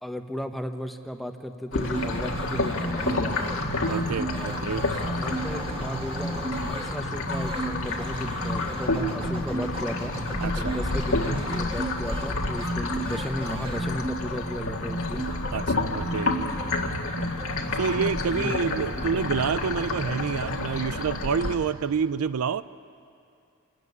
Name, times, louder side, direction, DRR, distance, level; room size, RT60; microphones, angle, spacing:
voice 1, 0.0-3.6 4.2-10.1 10.6-15.3 16.3-16.5 18.3-19.2, equal, ahead, 6 dB, 1.0 m, -35 dB
sound 1, 1.7-21.6, left 2 dB, 65° left, 1.7 m, -30 dB
sound 2, 1.8-18.2, right 1 dB, 25° right, 2.1 m, -34 dB
voice 2, 3.9-4.9 10.4-10.8 15.5-16.3 17.8-22.6, right 6 dB, 70° right, 15 dB, 0.5 m, -28 dB
26.5 x 13.5 x 9.5 m, 2.4 s
head